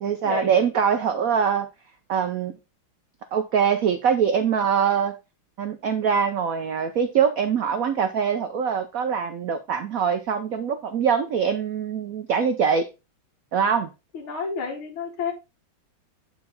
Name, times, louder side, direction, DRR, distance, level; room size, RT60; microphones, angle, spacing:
voice 1, 0.0-1.7 2.1-2.5 3.3-5.1 5.6-12.9 13.5-13.9, right 7 dB, 90° right, 0.7 m, -23 dB
voice 2, 14.1-15.3, left 6 dB, 70° left, 2.0 m, -30 dB
8.6 x 4.6 x 3.8 m
omnidirectional pair, 2.3 m